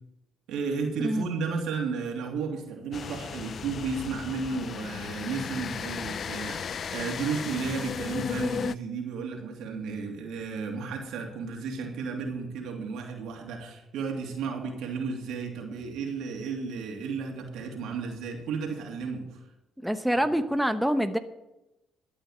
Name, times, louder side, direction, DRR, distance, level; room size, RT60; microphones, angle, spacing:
voice 1, 0.5-19.4, right 5 dB, 80° right, 2 dB, 2.9 m, -33 dB
sound 1, 2.9-8.8, left 7 dB, 55° left, 0.4 m, -35 dB
voice 2, 19.8-21.2, equal, ahead, 8 dB, 0.9 m, -26 dB
13.0 x 8.7 x 7.3 m, 0.97 s
cardioid pair, 80°, 0 cm